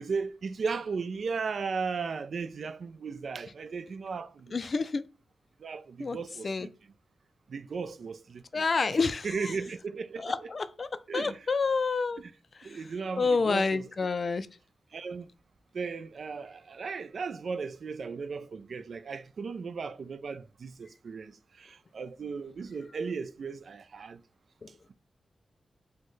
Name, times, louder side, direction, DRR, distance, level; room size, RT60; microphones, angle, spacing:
voice 1, 0.0-4.6 5.6-6.7 7.5-8.6 8.9-9.0 9.2-10.5 11.1-11.5 12.2-12.3 12.6-13.9 14.9-15.3 15.7-24.2, right 5 dB, 65° right, 0.3 m, -36 dB
voice 2, 4.5-5.0 6.0-6.2 6.4-6.7 8.5-9.3 10.2-12.2 13.2-14.5 24.6-24.9, left 4 dB, 45° left, 0.3 m, -28 dB
6.3 x 2.1 x 3.1 m
wide cardioid pair, 120°, 0 cm